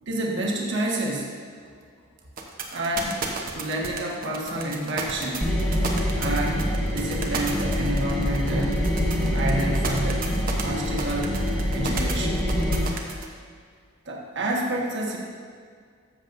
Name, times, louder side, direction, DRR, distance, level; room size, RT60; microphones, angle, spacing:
voice 1, 0.0-1.3 2.7-3.2 3.5-5.5 6.2-8.9 9.2-10.3 10.6-11.3 11.7-12.4 14.1-15.2, right 1 dB, 60° right, -2 dB, 1.3 m, -29 dB
sound 1, 2.4-13.3, right 5 dB, 45° right, 0.9 m, -33 dB
sound 2, 5.4-12.8, equal, 5° left, 1.8 m, -25 dB
13.5 x 7.3 x 2.6 m, 2.1 s
head